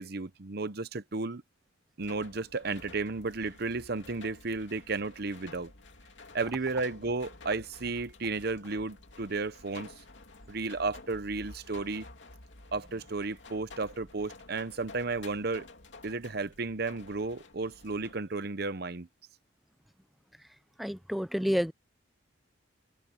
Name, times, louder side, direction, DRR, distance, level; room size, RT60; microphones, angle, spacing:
voice 1, 0.0-1.4 2.0-5.7 6.3-9.9 10.5-12.1 12.7-15.7 16.0-19.1, right 3 dB, 50° right, 0.8 m, -33 dB
sound 1, 2.0-18.1, left 3 dB, 65° left, 2.8 m, -51 dB
voice 2, 20.8-21.7, equal, ahead, 0.4 m, -29 dB
head